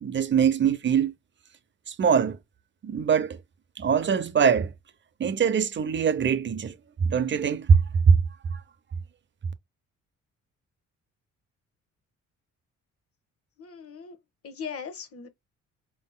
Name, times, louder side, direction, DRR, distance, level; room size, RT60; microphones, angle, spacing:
voice 1, 0.0-1.1 1.9-2.4 2.8-3.4 3.8-4.7 5.2-6.7 7.0-7.8 8.1-8.2 8.5-8.6, right 6 dB, 40° right, 0.7 m, -22 dB
voice 2, 13.6-14.2 14.4-15.3, left 6 dB, 50° left, 1.1 m, -39 dB
4.9 x 3.7 x 2.2 m
cardioid pair, 90°, 30 cm